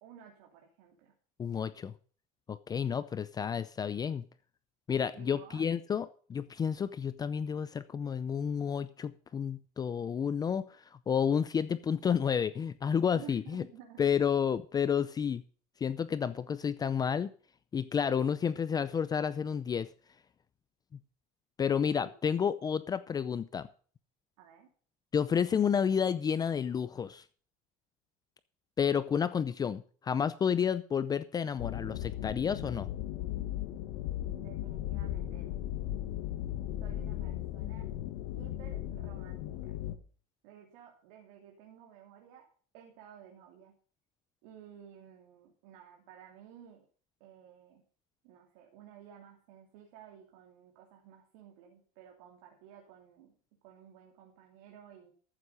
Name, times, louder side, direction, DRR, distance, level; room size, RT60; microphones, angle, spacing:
voice 1, 0.0-1.1 5.1-5.7 13.1-14.2 22.0-22.1 24.4-24.7 34.3-35.6 36.8-37.9 38.4-39.8 40.4-42.5 42.7-43.7 44.4-46.8 47.2-47.8 48.2-53.3 53.6-55.1, right 9 dB, 80° right, 1 dB, 2.9 m, -54 dB
voice 2, 1.4-1.9 2.5-4.2 4.9-10.6 11.1-13.6 14.0-15.4 15.8-17.3 17.7-19.9 21.6-23.7 25.1-27.2 28.8-32.9, left 7 dB, 20° left, 14 dB, 0.6 m, -30 dB
sound 1, 31.6-40.0, left 13 dB, 80° left, 1.5 m, -37 dB
14.5 x 7.9 x 5.4 m, 0.43 s
cardioid pair, 135°, 17 cm